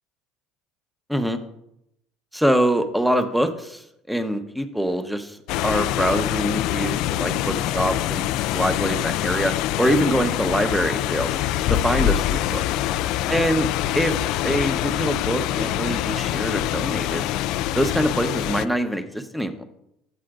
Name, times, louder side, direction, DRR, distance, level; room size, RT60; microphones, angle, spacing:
voice 1, 2.3-5.4 5.6-11.4 11.7-12.6 13.3-13.7 13.9-14.2 14.4-17.2 17.7-19.6, equal, ahead, 8 dB, 1.0 m, -24 dB
sound 1, 5.5-18.7, left 13 dB, 70° left, 0.3 m, -25 dB
12.5 x 8.4 x 2.5 m, 0.80 s
supercardioid pair, 100°, 0 cm